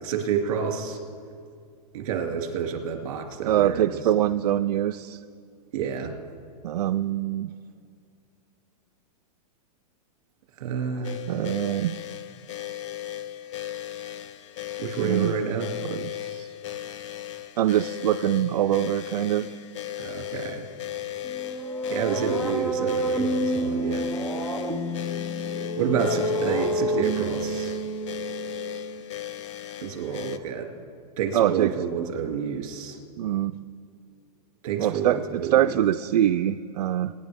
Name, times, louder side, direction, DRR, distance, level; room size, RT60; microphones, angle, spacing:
voice 1, 0.0-1.0 1.9-4.0 5.7-6.1 10.6-11.2 14.8-15.7 20.0-20.7 21.9-24.1 25.8-27.8 29.8-30.7 31.2-33.0 34.6-35.6, right 6 dB, 55° right, 2 dB, 2.6 m, -29 dB
voice 2, 3.5-5.2 6.6-7.5 11.3-11.9 15.0-15.3 15.8-16.5 17.6-19.5 31.3-31.7 33.2-33.6 34.8-37.1, right 12 dB, 80° right, 9 dB, 0.5 m, -24 dB
sound 1, 11.0-30.4, left 12 dB, 45° left, 0.6 m, -36 dB
sound 2, 21.2-29.0, right 1 dB, 10° left, 0.7 m, -29 dB
24.0 x 10.5 x 3.6 m, 2.3 s
supercardioid pair, 165°, 21 cm